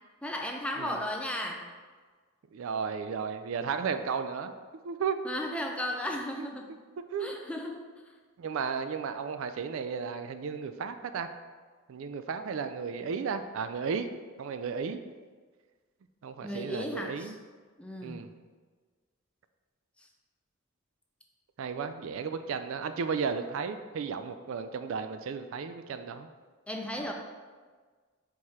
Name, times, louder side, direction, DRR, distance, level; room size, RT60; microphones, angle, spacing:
voice 1, 0.2-1.6 5.2-6.7 7.2-7.8 16.4-17.3 17.8-18.2 26.7-27.1, left 1 dB, 5° left, 1 dB, 0.5 m, -35 dB
voice 2, 2.5-4.5 4.8-5.2 5.5-5.6 6.4-6.5 7.1-7.3 8.4-11.3 11.9-14.1 14.4-15.0 16.2-17.4 18.0-18.3 21.6-26.3, right 6 dB, 65° right, 9 dB, 0.3 m, -34 dB
4.6 x 4.2 x 4.8 m, 1.5 s
head